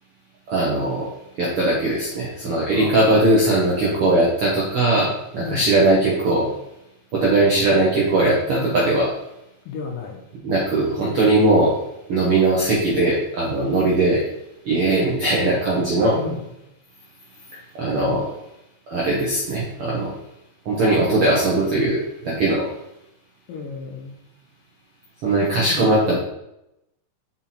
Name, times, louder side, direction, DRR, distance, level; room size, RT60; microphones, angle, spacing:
voice 1, 0.5-1.1 1.4-6.5 7.1-9.1 10.4-11.7 12.1-14.2 14.6-16.2 17.8-18.3 18.9-20.1 20.6-22.7 25.2-26.2, right 2 dB, 65° right, -5 dB, 1.3 m, -19 dB
voice 2, 5.4-5.7 9.7-10.2 16.1-16.4 23.5-24.2 25.4-25.9, left 5 dB, 75° left, 2 dB, 2.4 m, -32 dB
5.8 x 5.7 x 4.3 m, 0.85 s
omnidirectional pair, 4.3 m